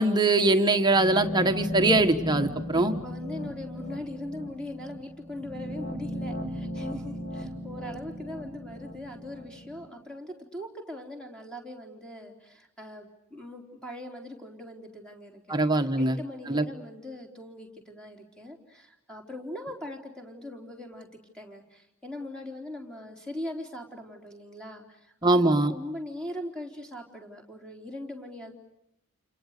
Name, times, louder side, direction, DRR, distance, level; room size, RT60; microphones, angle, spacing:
voice 1, 0.0-2.9 15.5-16.2 16.5-16.6 25.2-25.7, right 2 dB, 20° right, 7 dB, 1.3 m, -22 dB
sound 1, 0.9-9.9, equal, 40° left, 5.4 m, -36 dB
voice 2, 2.7-15.6 16.0-21.1 21.3-28.5, left 1 dB, 5° left, 1 dB, 3.9 m, -41 dB
30.0 x 29.0 x 6.7 m, 0.86 s
head